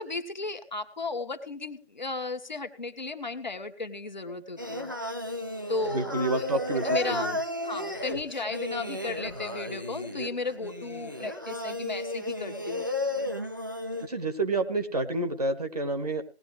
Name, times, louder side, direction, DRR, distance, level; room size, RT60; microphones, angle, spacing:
voice 1, 0.0-4.9 5.7-6.5 6.8-7.4 7.6-12.9, left 3 dB, 45° left, 6 dB, 1.5 m, -35 dB
Singing, 4.6-14.1, left 1 dB, 20° right, 0.7 m, -33 dB
voice 2, 5.9-7.3 14.0-16.2, right 2 dB, 40° right, 7 dB, 1.3 m, -29 dB
18.5 x 11.5 x 3.2 m, 0.36 s
figure-of-eight pair, 165°, 31 cm